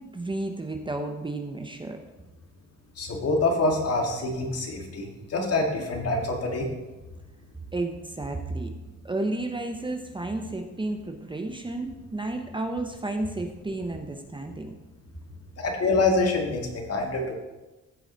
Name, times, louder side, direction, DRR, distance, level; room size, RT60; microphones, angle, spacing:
voice 1, 0.0-2.0 7.7-8.7 9.0-14.8, right 2 dB, 15° right, 5 dB, 0.9 m, -32 dB
voice 2, 3.0-6.7 15.6-17.3, left 2 dB, 55° left, 2 dB, 2.0 m, -26 dB
14.5 x 4.9 x 4.0 m, 1.1 s
cardioid pair, 90°, 30 cm